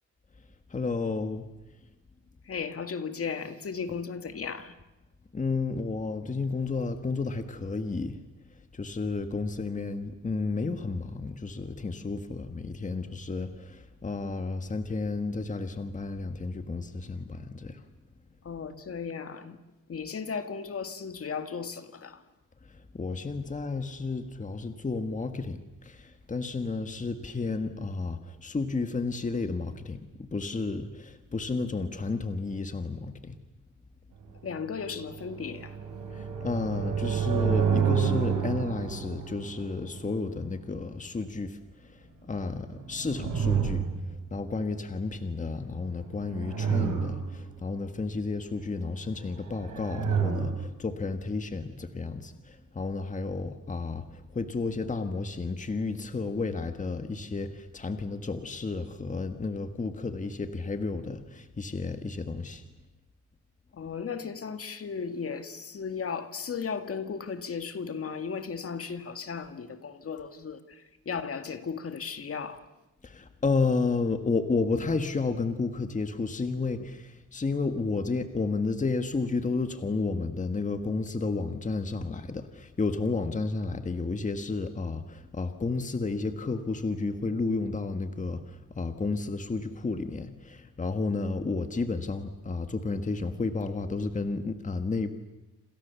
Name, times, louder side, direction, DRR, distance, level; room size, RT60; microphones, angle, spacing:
voice 1, 0.7-1.4 5.3-8.2 8.7-17.9 22.6-33.4 36.1-43.9 44.3-62.6 73.0-95.1, left 3 dB, 25° left, 1.6 m, -32 dB
voice 2, 2.4-4.8 18.4-19.6 19.9-22.2 34.4-35.8 63.7-72.7, left 6 dB, 50° left, 2.1 m, -36 dB
sound 1, 34.9-40.6 42.6-44.4 46.0-47.5 49.4-50.7, right 7 dB, 90° right, 4.6 m, -30 dB
28.0 x 27.5 x 7.1 m
cardioid pair, 125°, 31 cm